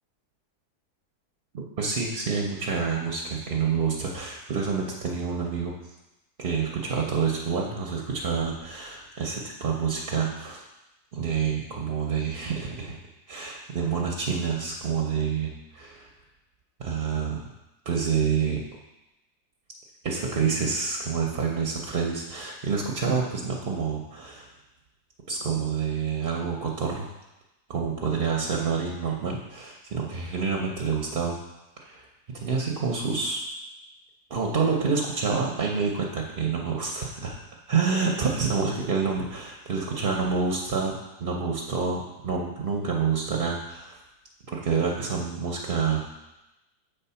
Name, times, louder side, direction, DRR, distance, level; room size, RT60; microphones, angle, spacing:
voice 1, 1.5-5.7 6.4-10.6 11.1-13.0 13.3-16.1 16.8-17.4 17.8-18.6 20.0-24.5 25.3-27.1 27.7-31.4 31.8-33.4 34.3-37.4 37.7-44.0 44.5-46.1, right 5 dB, 45° right, -1 dB, 0.8 m, -28 dB
7.4 x 4.5 x 5.7 m, 0.97 s
omnidirectional pair, 1.7 m